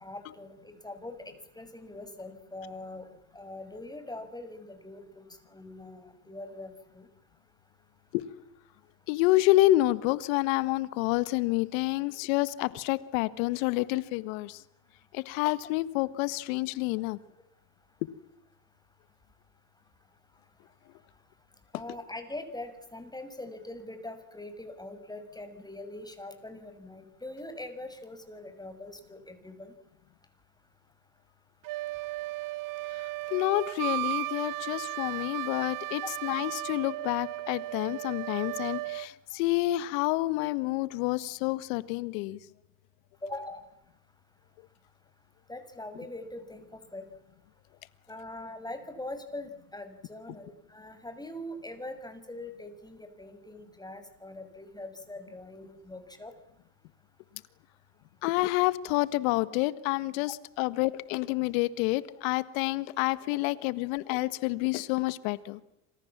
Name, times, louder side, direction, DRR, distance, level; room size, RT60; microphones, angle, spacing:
voice 1, 0.0-3.1 3.3-7.1 13.8-13.9 21.7-29.7 43.2-43.6 45.5-46.6 46.9-47.0 48.1-56.3, left 1 dB, 10° left, 9 dB, 6.9 m, -42 dB
voice 2, 9.1-14.6 15.1-17.2 33.0-42.4 58.2-65.6, left 18 dB, 75° left, 16 dB, 1.7 m, -28 dB
Wind instrument woodwind instrument, 31.6-39.1, right 17 dB, 55° right, 1.0 m, -35 dB
29.0 x 26.5 x 7.5 m, 0.86 s
hypercardioid pair, 75°, 40 cm